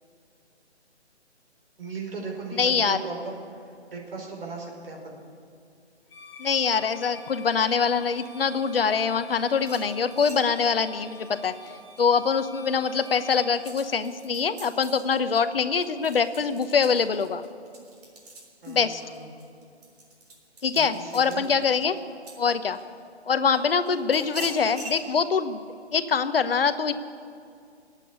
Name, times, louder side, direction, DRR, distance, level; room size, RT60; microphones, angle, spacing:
voice 1, 1.8-3.3 3.9-5.2 18.6-19.3 20.7-21.4, right 4 dB, 55° right, 0 dB, 4.8 m, -37 dB
voice 2, 2.5-3.0 6.4-11.5 12.0-17.4 18.7-19.0 20.6-22.0 22.4-22.8 23.3-25.7 25.9-26.9, left 6 dB, 55° left, 11 dB, 1.0 m, -24 dB
Bowed string instrument, 6.1-13.6, left 1 dB, 10° left, 3.9 m, -48 dB
sound 1, 9.6-12.4 12.8-23.0 23.5-25.0, right 1 dB, 35° right, 3.5 m, -45 dB
17.5 x 8.4 x 9.6 m, 2.3 s
hypercardioid pair, 165°, 34 cm